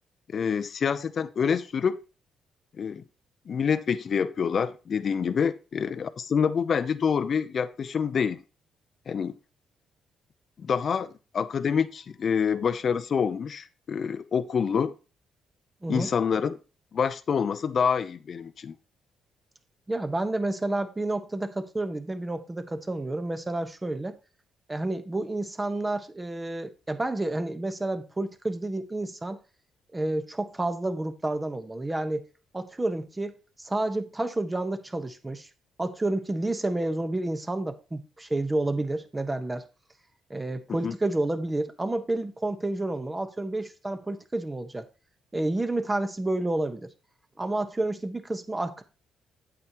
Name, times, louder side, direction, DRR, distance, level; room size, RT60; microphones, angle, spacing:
voice 1, 0.3-2.0 2.8-3.0 3.5-8.4 9.1-9.3 10.6-14.9 15.9-16.6 16.9-18.8 40.8-40.9, left 6 dB, 50° left, 0.6 m, -27 dB
voice 2, 19.9-24.1 24.7-29.4 29.9-32.2 32.5-35.5 35.8-39.6 40.3-44.9 45.3-46.9 47.4-48.8, right 2 dB, 15° right, 1.2 m, -30 dB
8.6 x 8.2 x 3.0 m
cardioid pair, 90°, 0 cm